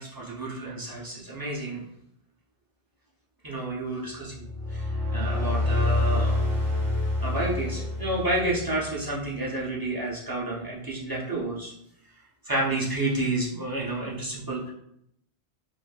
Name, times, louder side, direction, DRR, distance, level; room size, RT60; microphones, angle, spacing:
voice 1, 0.0-1.8 3.4-4.4 4.7-6.4 7.2-11.7 12.4-14.7, right 2 dB, 25° right, -5 dB, 0.5 m, -30 dB
sound 1, 4.3-9.0, left 2 dB, 45° right, 1.6 m, -27 dB
3.2 x 2.6 x 2.3 m, 0.75 s
omnidirectional pair, 1.0 m